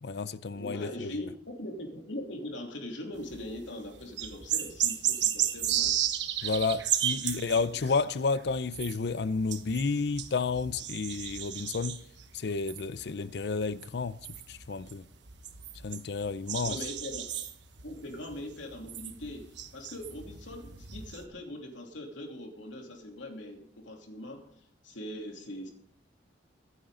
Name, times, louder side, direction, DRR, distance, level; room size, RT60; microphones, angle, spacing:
voice 1, 0.0-1.1 6.4-12.0 12.3-14.2 14.5-15.0 15.8-16.8, left 4 dB, 60° left, 0.5 m, -31 dB
voice 2, 0.5-5.9 7.4-7.8 16.6-17.2 17.8-24.5 24.8-25.7, left 1 dB, 80° left, 3.1 m, -41 dB
sound 1, 3.2-3.6 3.9-21.2, right 10 dB, 70° right, 1.2 m, -34 dB
24.0 x 9.1 x 3.8 m
head